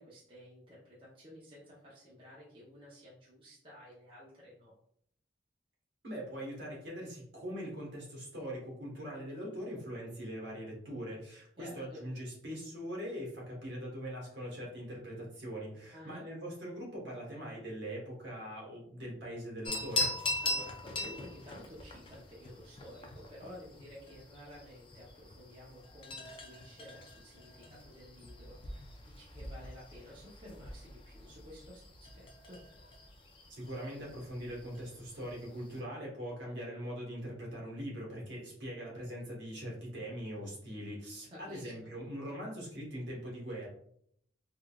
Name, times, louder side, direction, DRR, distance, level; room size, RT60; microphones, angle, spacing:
voice 1, 0.0-4.7 11.6-12.0 15.9-16.2 20.4-31.8 32.1-32.6 41.3-41.9, left 1 dB, 25° right, -7 dB, 0.7 m, -52 dB
voice 2, 6.0-20.1 33.5-43.7, equal, 65° right, -3 dB, 1.2 m, -42 dB
sound 1, 19.6-35.8, left 2 dB, 25° left, 0.3 m, -42 dB
3.6 x 2.3 x 2.3 m, 0.68 s
head